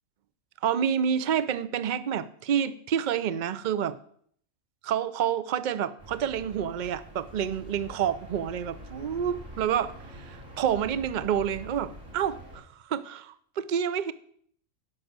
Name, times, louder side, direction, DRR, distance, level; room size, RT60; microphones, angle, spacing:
voice 1, 0.6-4.0 4.8-14.1, right 8 dB, 55° right, 0.5 m, -28 dB
sound 1, 6.0-12.6, equal, 70° right, 4.4 m, -46 dB
9.8 x 6.0 x 8.0 m
omnidirectional pair, 1.4 m